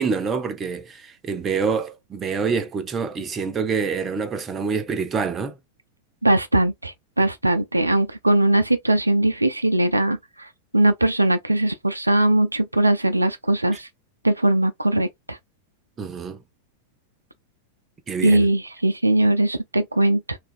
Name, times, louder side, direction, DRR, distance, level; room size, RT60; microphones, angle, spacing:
voice 1, 0.0-5.6 13.7-13.8 16.0-16.4 18.1-18.5, right 5 dB, 25° right, 0.6 m, -26 dB
voice 2, 6.2-10.5 10.7-13.9 14.2-15.4 18.2-20.4, right 1 dB, 85° right, 0.3 m, -20 dB
3.2 x 2.4 x 2.5 m
figure-of-eight pair, 90°, 0 cm